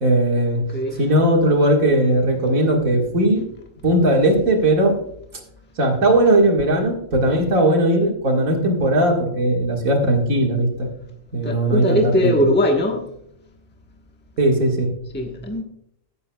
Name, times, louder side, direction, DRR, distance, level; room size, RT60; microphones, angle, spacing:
voice 1, 0.0-0.6 1.0-3.4 3.8-4.9 5.8-10.9 11.3-12.4 14.4-14.9, right 1 dB, 85° right, 0 dB, 2.3 m, -18 dB
voice 2, 0.7-1.0 11.4-13.0 15.1-15.6, left 1 dB, 10° left, 2 dB, 1.1 m, -20 dB
16.0 x 8.2 x 2.3 m, 0.73 s
omnidirectional pair, 1.4 m